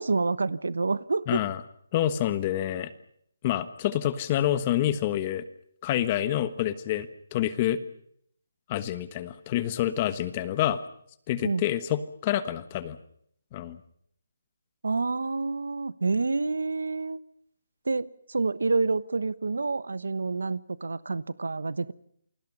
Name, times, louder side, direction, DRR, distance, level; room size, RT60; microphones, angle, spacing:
voice 1, 0.0-1.4 11.4-11.6 14.8-17.2 17.8-21.9, right 3 dB, 90° right, 17 dB, 1.2 m, -28 dB
voice 2, 1.3-1.6 1.9-2.9 3.4-5.4 5.8-7.8 8.7-10.8 11.3-13.0 13.5-13.8, left 12 dB, 25° left, 13 dB, 1.3 m, -27 dB
29.0 x 22.5 x 5.5 m, 0.66 s
hypercardioid pair, 165°, 0 cm